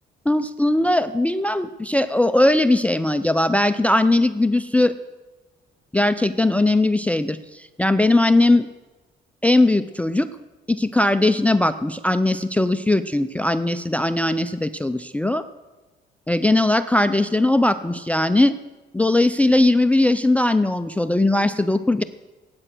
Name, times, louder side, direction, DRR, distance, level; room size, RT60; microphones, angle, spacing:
voice 1, 0.3-4.9 5.9-8.7 9.4-10.3 10.7-15.4 16.3-18.6 18.9-22.0, left 2 dB, 5° left, 12 dB, 0.5 m, -19 dB
15.5 x 9.1 x 6.1 m, 1.2 s
cardioid pair, 90°, 20 cm